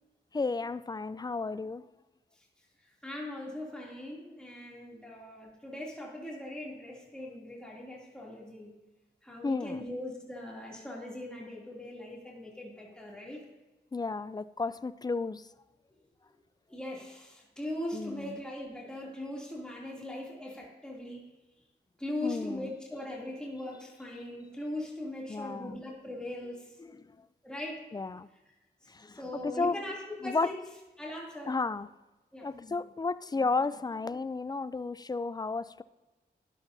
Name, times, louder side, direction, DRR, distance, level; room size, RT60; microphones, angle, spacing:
voice 1, 0.3-1.9 9.4-9.9 13.9-15.5 17.9-18.4 22.2-22.7 25.3-25.8 27.0-27.1 27.9-28.3 28.9-29.8 30.2-30.5 31.5-31.9 32.4-35.8, left 3 dB, 20° left, 16 dB, 0.4 m, -33 dB
voice 2, 3.0-8.8 9.2-13.4 16.7-21.3 22.0-26.8 27.4-27.8 28.8-30.6 31.0-31.6 32.3-32.5, left 1 dB, 5° left, -4 dB, 2.8 m, -40 dB
13.0 x 11.0 x 2.7 m, 1.1 s
cardioid pair, 55°, 19 cm